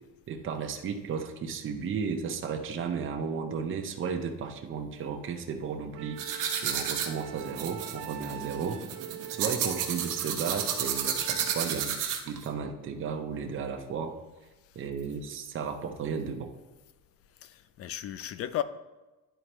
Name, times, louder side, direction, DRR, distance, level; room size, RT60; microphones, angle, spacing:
voice 1, 0.3-8.8 9.3-14.2 14.8-16.5, right 6 dB, 35° right, 0.7 m, -34 dB
Wind instrument woodwind instrument, 5.9-11.8, right 12 dB, 80° right, 0.5 m, -44 dB
sound 1, 6.2-12.5, right 8 dB, 60° right, 1.0 m, -32 dB
voice 2, 17.4-18.6, left 12 dB, 45° left, 0.4 m, -34 dB
11.5 x 4.3 x 3.0 m
cardioid pair, 145°, 35 cm